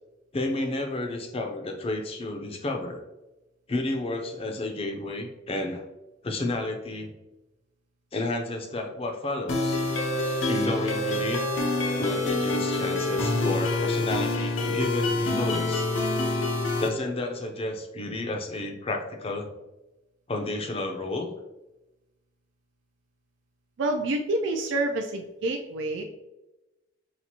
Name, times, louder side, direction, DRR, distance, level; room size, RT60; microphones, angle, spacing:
voice 1, 0.3-3.0 3.7-5.8 6.2-7.1 8.1-9.8 10.3-11.6 12.0-15.9 16.8-19.5 20.3-21.3, left 2 dB, 30° left, 4 dB, 0.5 m, -31 dB
sound 1, 9.5-16.9, left 2 dB, 85° left, 0.7 m, -26 dB
voice 2, 23.8-26.0, right 2 dB, 70° right, 3 dB, 0.4 m, -28 dB
5.8 x 2.5 x 2.8 m, 1.0 s
head